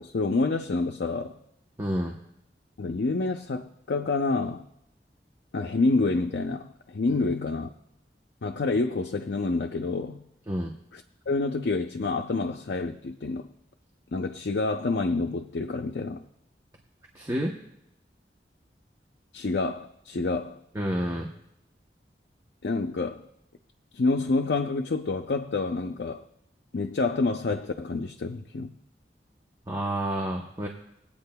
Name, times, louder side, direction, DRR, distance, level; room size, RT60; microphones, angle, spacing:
voice 1, 0.0-1.4 2.8-4.7 5.5-7.7 8.4-10.3 10.9-13.5 14.1-16.2 19.3-20.6 22.6-23.3 23.9-26.3 26.7-28.8, left 3 dB, 75° left, 3 dB, 0.5 m, -28 dB
voice 2, 1.8-2.2 10.5-10.7 17.1-17.5 20.7-21.3 29.7-30.7, equal, 20° right, 0 dB, 0.8 m, -29 dB
21.5 x 8.6 x 2.2 m, 0.80 s
head